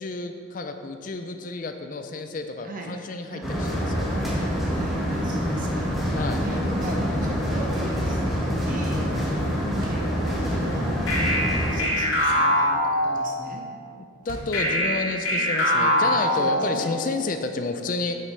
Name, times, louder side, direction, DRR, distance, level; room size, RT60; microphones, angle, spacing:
voice 1, 0.0-4.0 6.1-6.4 14.0-18.1, left 3 dB, 40° left, 7 dB, 0.4 m, -31 dB
sound 1, 3.4-11.8, equal, ahead, 1.5 m, -26 dB
voice 2, 4.7-6.1 6.4-9.1 9.8-11.1 11.7-13.7 15.7-16.9, right 1 dB, 40° right, 0 dB, 1.1 m, -37 dB
Door, 9.7-10.2 11.4-13.1 14.2-14.7, right 1 dB, 85° right, 1.1 m, -44 dB
sound 2, 11.1-13.6 14.5-17.0, left 1 dB, 85° left, 1.9 m, -23 dB
8.6 x 8.1 x 3.2 m, 2.2 s
head